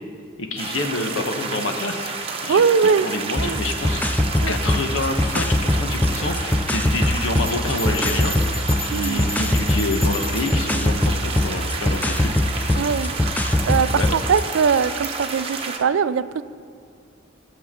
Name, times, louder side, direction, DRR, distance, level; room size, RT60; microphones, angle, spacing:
voice 1, 0.4-2.1 2.4-4.2 4.5-8.3 8.8-13.0 13.9-14.1, left 2 dB, 80° left, 5 dB, 1.1 m, -28 dB
sound 1, 0.6-15.8, right 4 dB, 30° right, 1.0 m, -30 dB
voice 2, 2.5-3.1 3.4-3.6 4.4-4.6 8.9-9.2 12.8-13.1 13.7-16.4, right 6 dB, 80° right, 15 dB, 0.4 m, -21 dB
sound 2, 3.4-14.5, left 1 dB, 10° left, 0.3 m, -23 dB
Bell, 7.5-10.6, left 2 dB, 30° left, 2.9 m, -34 dB
20.0 x 7.1 x 3.7 m, 2.2 s
head